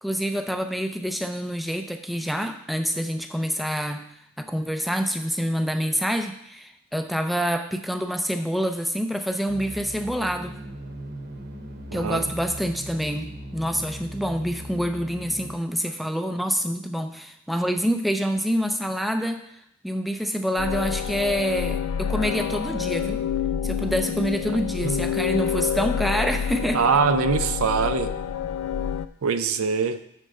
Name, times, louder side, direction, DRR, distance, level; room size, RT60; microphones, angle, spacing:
voice 1, 0.0-4.1 4.4-10.6 11.9-19.4 19.8-23.2 23.6-26.9, equal, ahead, 6 dB, 0.4 m, -27 dB
sound 1, 9.5-15.5, equal, 50° right, 0.8 m, -39 dB
voice 2, 11.9-12.2 24.8-25.0 26.7-28.1 29.2-30.0, right 5 dB, 70° right, 10 dB, 0.5 m, -23 dB
sound 2, 20.6-29.1, left 8 dB, 85° left, 0.3 m, -27 dB
6.6 x 4.5 x 6.3 m, 0.74 s
head